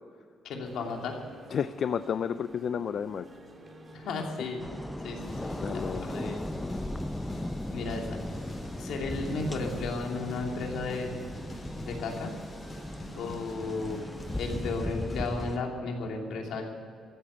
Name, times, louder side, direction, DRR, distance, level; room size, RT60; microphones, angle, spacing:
voice 1, 0.4-1.2 3.9-4.7 5.0-6.4 7.7-8.0 8.8-11.1 11.8-12.3 13.1-14.0 14.3-16.7, left 3 dB, 80° left, 1 dB, 2.7 m, -34 dB
sound 1, 0.6-15.6, right 1 dB, 30° right, 2.2 m, -49 dB
voice 2, 1.5-3.3 5.6-6.1, left 7 dB, 55° left, 13 dB, 0.4 m, -31 dB
sound 2, 4.6-15.6, left 1 dB, 10° left, 0.6 m, -37 dB
sound 3, 5.2-15.6, left 1 dB, 35° left, 4.4 m, -46 dB
14.5 x 8.5 x 9.7 m, 2.4 s
cardioid pair, 90°, 0 cm